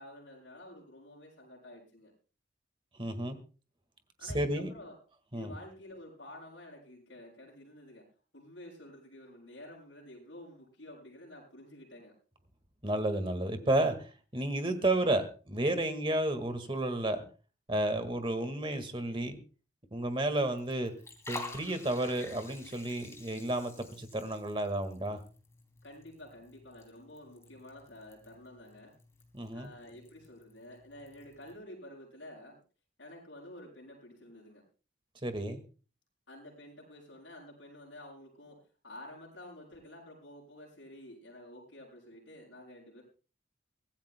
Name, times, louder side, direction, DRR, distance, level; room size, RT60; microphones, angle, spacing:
voice 1, 0.0-2.1 4.2-5.0 5.3-8.1 8.3-12.1 25.8-28.9 29.5-32.6 33.0-34.6 36.3-43.0, left 1 dB, 70° left, -4 dB, 6.9 m, -50 dB
voice 2, 3.0-3.4 4.2-4.7 5.3-5.5 12.8-17.2 17.7-19.4 19.9-20.9 21.3-25.2 29.3-29.7 35.2-35.6, right 1 dB, 25° right, 8 dB, 1.7 m, -32 dB
Liquid, 20.1-31.6, left 3 dB, 15° left, 2.8 m, -50 dB
24.0 x 15.5 x 2.2 m, 0.36 s
head